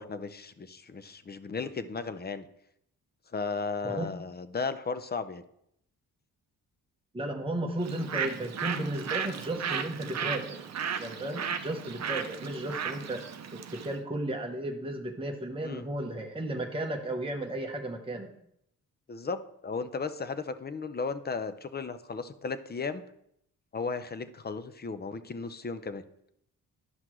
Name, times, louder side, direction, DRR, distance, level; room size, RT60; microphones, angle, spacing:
voice 1, 0.0-2.5 3.3-5.4 15.6-15.9 19.1-23.0 23.7-26.0, left 4 dB, 25° left, 11 dB, 0.6 m, -35 dB
voice 2, 7.1-10.6 11.0-13.2 13.7-18.3, right 1 dB, 15° right, 1 dB, 0.9 m, -34 dB
Bird, 7.8-14.0, right 7 dB, 45° right, 0.7 m, -35 dB
11.5 x 5.7 x 3.1 m, 0.74 s
cardioid pair, 75°, 36 cm